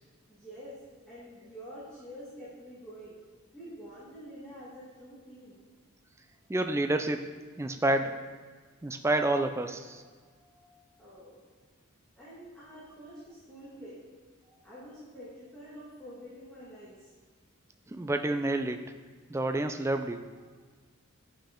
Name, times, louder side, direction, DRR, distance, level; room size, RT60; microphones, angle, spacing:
voice 1, 0.3-3.2 3.5-5.6 11.0-11.4 12.2-14.0 14.6-17.1, equal, 5° left, -10 dB, 1.6 m, -47 dB
voice 2, 6.5-7.2 7.6-8.1 8.8-10.0 17.9-18.9 19.3-20.2, right 2 dB, 15° right, 7 dB, 0.3 m, -29 dB
9.0 x 5.4 x 3.7 m, 1.5 s
head